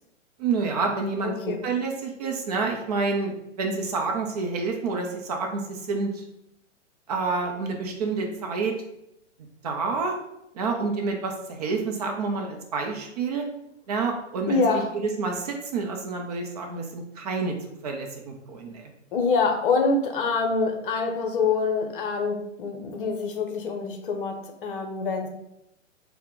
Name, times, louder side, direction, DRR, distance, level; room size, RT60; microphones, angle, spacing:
voice 1, 0.4-6.2 7.1-8.7 9.6-10.2 10.5-13.4 13.9-14.6 14.9-17.6 17.8-18.9, right 4 dB, 30° right, 2 dB, 0.5 m, -28 dB
voice 2, 1.2-1.6 14.5-14.9 19.1-25.3, left 4 dB, 45° left, 3 dB, 0.7 m, -25 dB
4.3 x 2.1 x 3.7 m, 0.82 s
figure-of-eight pair, 110°, 38 cm